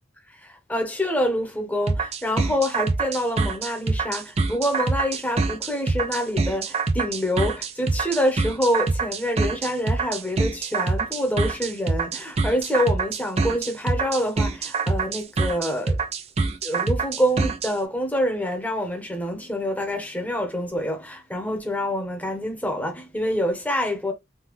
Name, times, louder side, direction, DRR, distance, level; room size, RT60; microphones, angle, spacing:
voice 1, 0.3-16.0 16.6-24.1, equal, 10° left, 0.8 m, -26 dB
sound 1, 1.9-17.7, right 3 dB, 35° right, 0.4 m, -25 dB
3.5 x 2.2 x 3.0 m
head